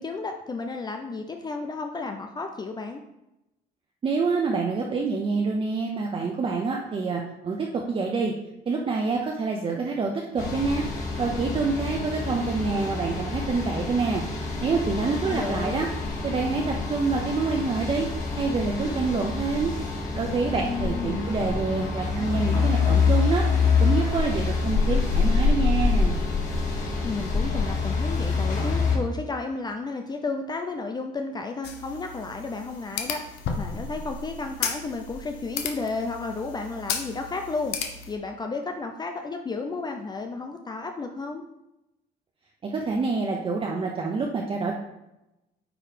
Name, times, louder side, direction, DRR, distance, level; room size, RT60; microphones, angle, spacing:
voice 1, 0.0-3.0 15.0-15.8 20.5-21.3 27.0-33.2 33.6-37.8 38.1-41.4, left 3 dB, 25° left, 5 dB, 0.6 m, -32 dB
voice 2, 4.0-8.3 8.7-14.2 14.6-15.9 16.2-18.1 18.4-19.7 20.1-23.5 23.8-26.1 42.6-44.8, right 4 dB, 30° right, 0 dB, 0.8 m, -27 dB
sound 1, 10.4-29.0, left 4 dB, 45° left, 2.4 m, -26 dB
sound 2, 31.6-38.2, left 6 dB, 85° left, 1.0 m, -34 dB
8.8 x 3.1 x 5.1 m, 0.92 s
cardioid pair, 110°, 17 cm